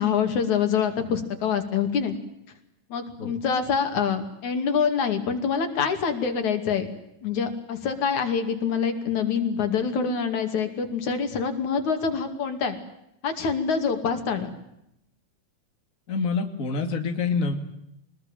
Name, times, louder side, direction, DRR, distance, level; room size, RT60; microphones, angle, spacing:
voice 1, 0.0-2.2 2.9-6.9 7.2-12.8 13.2-14.5, left 6 dB, 80° left, 6 dB, 4.0 m, -25 dB
voice 2, 16.1-17.6, left 4 dB, 30° left, 5 dB, 2.5 m, -26 dB
24.5 x 20.5 x 9.1 m, 0.79 s
omnidirectional pair, 3.3 m